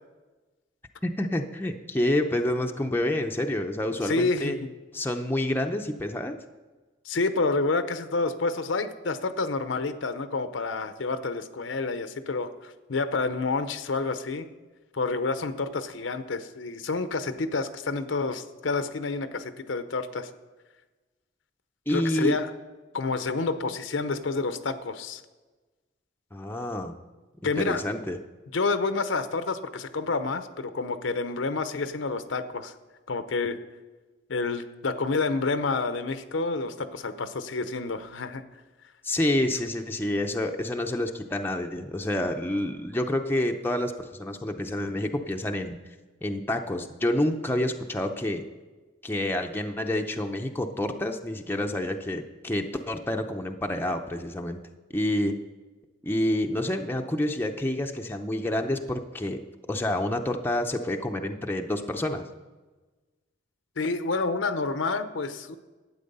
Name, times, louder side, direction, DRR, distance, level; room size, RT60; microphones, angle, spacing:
voice 1, 1.0-4.6 4.9-6.4 21.9-22.4 26.3-27.0 27.6-28.2 39.0-45.8 46.2-48.4 49.0-54.6 54.9-55.4 56.0-62.2, left 1 dB, 10° left, 3 dB, 0.6 m, -28 dB
voice 2, 4.0-4.7 7.1-14.5 14.9-20.3 21.9-22.5 22.9-25.2 27.4-27.8 28.5-32.7 33.1-33.6 34.3-38.4 63.8-65.6, left 3 dB, 75° left, 10 dB, 0.7 m, -29 dB
12.0 x 8.6 x 5.4 m, 1.2 s
head